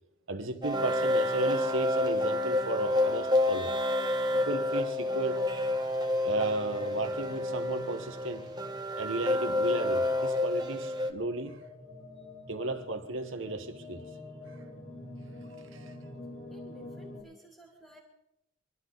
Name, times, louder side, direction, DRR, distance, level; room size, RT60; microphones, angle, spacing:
voice 1, 0.3-3.7 4.3-5.4 6.2-8.5 9.0-11.6 12.5-14.0 15.7-15.9, right 2 dB, 65° right, 1.3 m, -34 dB
sound 1, 0.6-11.1, left 1 dB, 20° right, 1.3 m, -29 dB
sound 2, 4.3-17.2, left 2 dB, 75° left, 5.8 m, -48 dB
voice 2, 16.5-18.0, right 1 dB, 10° left, 2.7 m, -54 dB
24.5 x 12.5 x 4.0 m
head